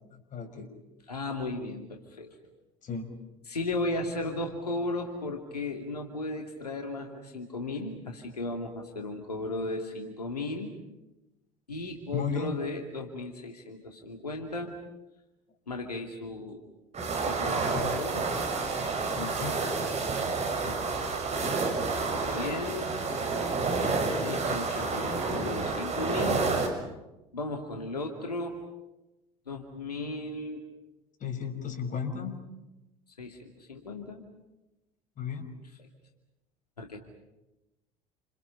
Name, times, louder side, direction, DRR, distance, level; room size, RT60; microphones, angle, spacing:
voice 1, 0.1-0.7 2.8-3.2 12.1-12.6 17.7-18.0 18.3-18.4 19.2-19.6 20.6-21.1 31.2-32.5 35.2-35.5, left 6 dB, 40° left, 6 dB, 5.9 m, -35 dB
voice 2, 1.1-2.4 3.5-10.7 11.7-14.7 15.7-16.6 17.1-18.2 22.1-22.9 24.2-26.5 27.3-28.6 29.5-30.6 33.2-34.2 36.8-37.0, left 2 dB, 90° left, 2 dB, 2.6 m, -35 dB
sound 1, 16.9-26.7, right 4 dB, 35° right, 6.4 m, -29 dB
29.5 x 27.5 x 5.9 m, 0.99 s
figure-of-eight pair, 65°, 19 cm